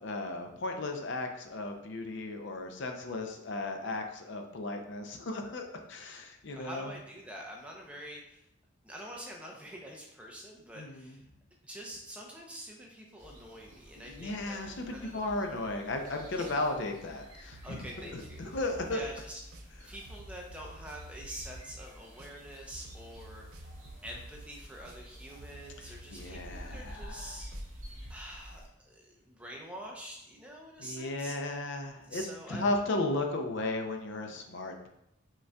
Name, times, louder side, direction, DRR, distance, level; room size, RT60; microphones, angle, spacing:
voice 1, 0.0-6.9 10.8-11.1 14.1-17.8 18.1-19.0 26.1-27.4 30.8-34.9, left 2 dB, 55° left, 4 dB, 0.5 m, -35 dB
voice 2, 6.5-8.5 8.8-11.2 11.6-14.6 14.9-15.5 16.3-16.5 17.6-18.6 18.9-23.7 24.0-27.5 28.1-31.3 32.1-32.8, equal, 5° right, -1 dB, 0.5 m, -46 dB
sound 1, 13.2-28.7, equal, 35° right, 1.4 m, -50 dB
sound 2, 17.5-28.2, right 1 dB, 85° right, 0.5 m, -51 dB
5.2 x 3.7 x 2.2 m, 0.81 s
head